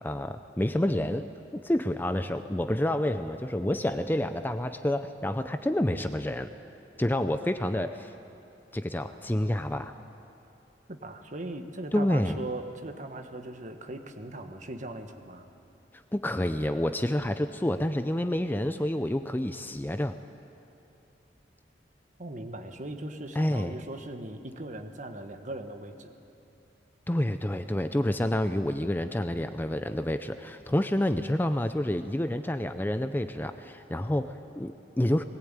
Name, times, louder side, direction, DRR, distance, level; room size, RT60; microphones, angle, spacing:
voice 1, 0.0-6.5 7.0-8.1 8.7-9.9 11.9-12.4 16.1-20.2 23.4-23.7 27.1-35.2, left 1 dB, 10° left, 9 dB, 0.5 m, -28 dB
voice 2, 10.9-15.5 22.2-26.1, right 1 dB, 45° right, 6 dB, 1.3 m, -39 dB
20.5 x 18.5 x 8.9 m, 2.8 s
head